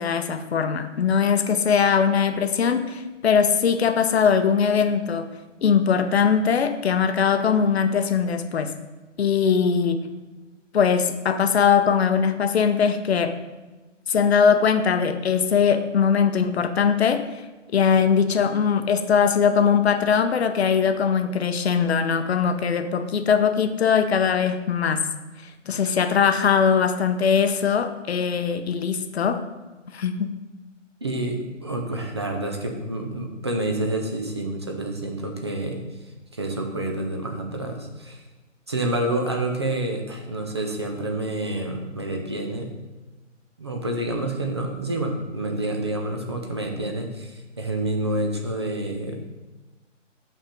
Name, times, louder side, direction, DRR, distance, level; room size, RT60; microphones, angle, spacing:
voice 1, 0.0-5.3 5.6-8.8 9.2-10.1 10.7-13.4 14.1-17.3 17.7-25.0 25.7-29.4 29.9-30.4, left 6 dB, 55° left, 8 dB, 0.7 m, -21 dB
voice 2, 31.0-35.8 36.3-38.2 38.7-42.7 43.6-49.2, right 1 dB, 20° right, 2 dB, 0.5 m, -28 dB
5.8 x 4.4 x 5.2 m, 1.2 s
figure-of-eight pair, 150°, 38 cm